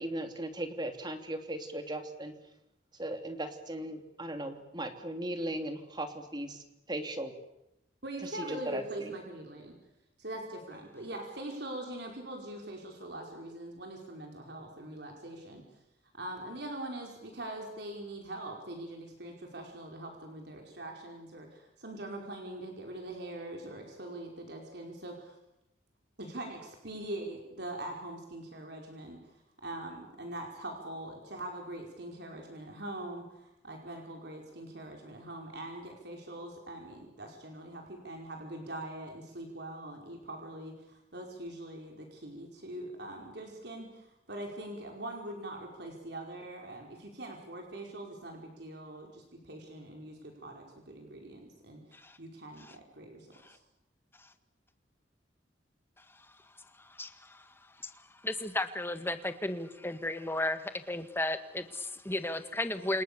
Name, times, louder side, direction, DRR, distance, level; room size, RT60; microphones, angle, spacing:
voice 1, 0.0-2.3 3.0-6.6 6.9-7.3 8.3-9.1, right 1 dB, 25° right, 6 dB, 3.1 m, -37 dB
voice 2, 8.0-9.7 10.2-15.6 16.1-25.4 26.2-29.2 29.6-53.6, right 1 dB, 60° right, 1 dB, 5.2 m, -43 dB
voice 3, 56.8-57.5 57.8-57.9 58.2-63.0, left 1 dB, 10° left, 9 dB, 1.7 m, -34 dB
29.5 x 27.5 x 7.1 m, 0.87 s
head